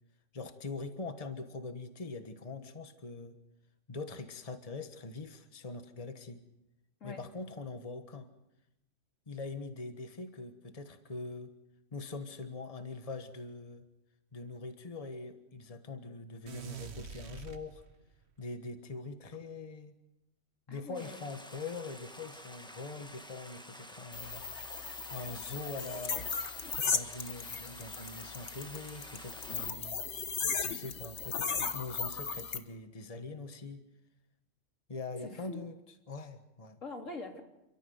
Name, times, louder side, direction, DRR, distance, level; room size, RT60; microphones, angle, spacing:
voice 1, 0.3-3.3 3.9-6.4 7.0-8.3 9.3-11.5 11.9-13.8 14.3-17.8 18.4-19.9 20.7-24.4 25.1-26.3 26.8-30.0 30.6-33.8 34.9-36.8, left 3 dB, 30° left, 8 dB, 1.5 m, -43 dB
sound 1, 16.5-18.2, right 7 dB, 60° right, 1.4 m, -45 dB
voice 2, 20.7-21.3 35.2-35.6 36.8-37.4, left 3 dB, 85° left, 3 dB, 3.3 m, -44 dB
Stream, 20.9-29.7, equal, 5° left, 1.4 m, -50 dB
sound 2, 24.1-32.6, left 5 dB, 65° left, 1.6 m, -37 dB
29.0 x 14.0 x 9.4 m, 0.92 s
omnidirectional pair, 1.3 m